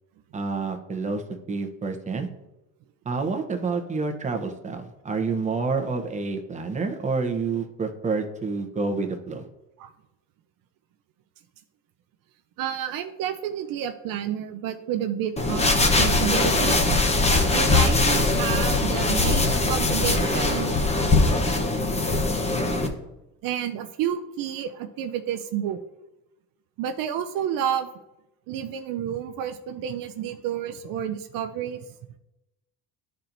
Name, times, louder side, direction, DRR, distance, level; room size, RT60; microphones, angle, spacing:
voice 1, 0.3-1.2 1.5-2.3 3.0-9.5, right 4 dB, 20° right, 4 dB, 0.9 m, -28 dB
voice 2, 12.6-15.7 16.0-16.8 17.5-20.8 23.4-25.8 26.8-27.9 28.5-31.8, right 9 dB, 65° right, 7 dB, 0.6 m, -30 dB
sound 1, 15.4-22.9, left 2 dB, 15° left, 0.9 m, -21 dB
11.5 x 4.3 x 2.6 m, 0.94 s
cardioid pair, 110°, 37 cm